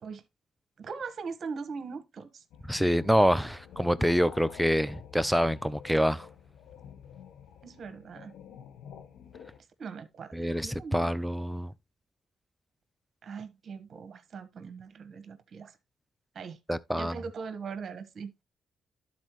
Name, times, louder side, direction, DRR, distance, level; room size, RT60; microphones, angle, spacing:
voice 1, 0.8-2.4 7.6-8.3 9.8-11.0 13.2-15.8 16.3-16.6 16.9-18.3, right 5 dB, 55° right, 1.2 m, -40 dB
sound 1, 2.5-9.6, left 8 dB, 85° left, 0.8 m, -49 dB
voice 2, 2.7-6.3 10.3-11.7 16.7-17.2, equal, ahead, 0.6 m, -26 dB
12.0 x 4.2 x 3.0 m
supercardioid pair, 65°, 0 cm